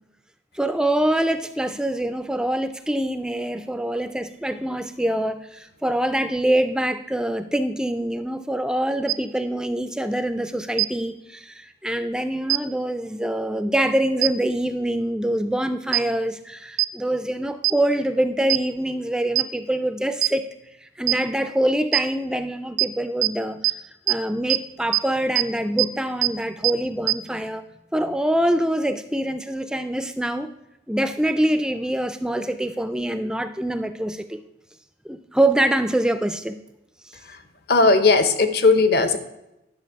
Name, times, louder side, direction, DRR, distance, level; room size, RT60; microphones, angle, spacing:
voice 1, 0.5-20.5 21.0-23.7 24.1-27.6 27.9-30.5 30.9-34.4 35.1-36.6, right 1 dB, 5° right, 10 dB, 0.3 m, -24 dB
sound 1, 9.1-9.2 10.8-10.9 12.5-12.6 14.2-14.3 15.9-16.0 16.8-16.9 17.6-17.7 18.5-18.6 19.4-19.5 20.2-20.3 21.1-21.2 21.9-22.0 22.8-22.9 23.2-23.3 23.6-23.7 24.1-24.2 24.5-24.6 24.9-25.0 25.4-25.5 25.8-25.9 26.2-26.3 26.6-26.7 27.1-27.2, right 23 dB, 80° right, 0.4 m, -19 dB
voice 2, 37.7-39.2, left 3 dB, 55° left, 11 dB, 0.7 m, -17 dB
10.5 x 6.4 x 4.6 m, 0.91 s
head